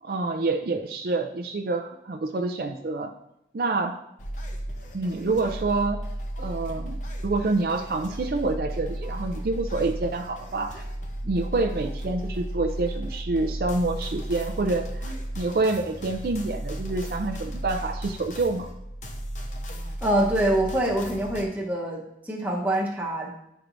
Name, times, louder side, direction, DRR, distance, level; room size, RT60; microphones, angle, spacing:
voice 1, 0.0-3.1 3.5-4.0 4.9-6.0 6.4-10.8 11.2-18.7, right 3 dB, 55° right, 5 dB, 0.4 m, -27 dB
sound 1, 4.2-21.4, right 1 dB, 45° left, 0.7 m, -35 dB
voice 2, 20.0-23.3, right 1 dB, 10° right, -1 dB, 0.9 m, -25 dB
9.8 x 4.5 x 2.6 m, 0.82 s
head